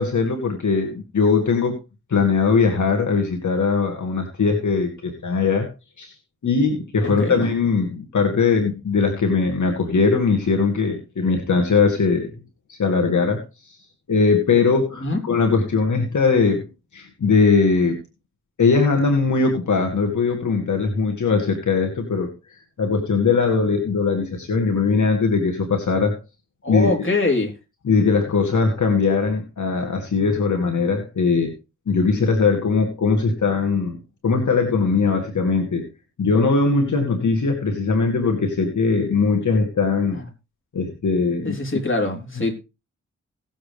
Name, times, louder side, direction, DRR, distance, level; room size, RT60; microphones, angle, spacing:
voice 1, 0.0-1.8 2.1-5.7 6.0-6.1 6.4-12.3 12.7-13.8 14.1-16.7 16.9-18.0 18.6-22.3 22.8-26.2 26.7-26.9 27.8-31.5 31.9-34.0 34.2-35.9 36.2-40.2 40.7-41.6 42.4-42.5, left 4 dB, 70° left, 2 dB, 2.2 m, -20 dB
voice 2, 7.0-7.4 15.0-15.2 26.6-27.5 40.1-40.2 41.4-42.5, left 2 dB, 40° left, 2 dB, 3.7 m, -23 dB
18.0 x 7.6 x 3.4 m, 0.28 s
cardioid pair, 60°, 30 cm